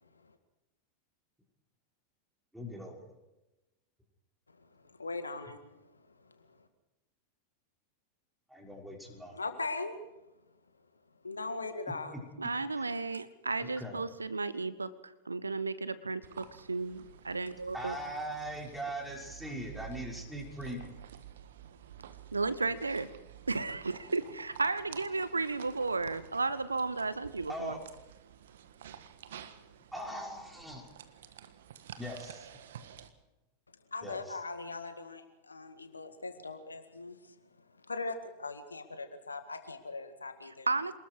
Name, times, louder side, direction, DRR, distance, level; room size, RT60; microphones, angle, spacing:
voice 1, 2.5-3.1 8.5-9.4 13.6-14.0 17.7-21.0 27.5-27.8 29.9-30.8 32.0-32.5 34.0-34.4, equal, 5° right, -1 dB, 5.8 m, -40 dB
voice 2, 4.6-6.6 9.3-9.9 11.2-12.2 33.9-37.4 37.9-40.7, left 3 dB, 80° left, 9 dB, 1.9 m, -40 dB
voice 3, 12.4-18.0 22.3-23.1 23.5-27.8 40.7-40.9, right 3 dB, 80° right, 16 dB, 0.9 m, -33 dB
sound 1, 16.2-33.1, right 9 dB, 60° right, 1.5 m, -51 dB
27.0 x 20.0 x 4.8 m, 1.0 s
figure-of-eight pair, 90°, 0 cm